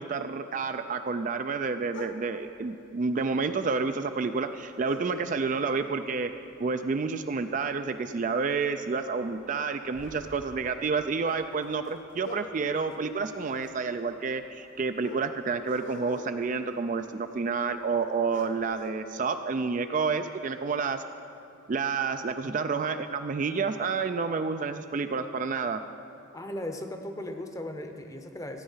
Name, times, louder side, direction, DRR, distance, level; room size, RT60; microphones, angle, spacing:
voice 1, 0.0-6.3 6.6-21.0 21.7-25.8, right 4 dB, 40° right, 8 dB, 0.3 m, -29 dB
sound 1, 1.9-2.5 3.5-3.6 3.8-3.9 4.8-5.7 6.1-6.4 6.8-8.4 8.7-8.9 9.4-17.7 18.0-18.1 18.3-18.9, left 1 dB, 60° left, 0.9 m, -46 dB
voice 2, 26.3-28.6, left 1 dB, 15° left, 6 dB, 0.7 m, -37 dB
14.5 x 8.9 x 5.6 m, 2.9 s
head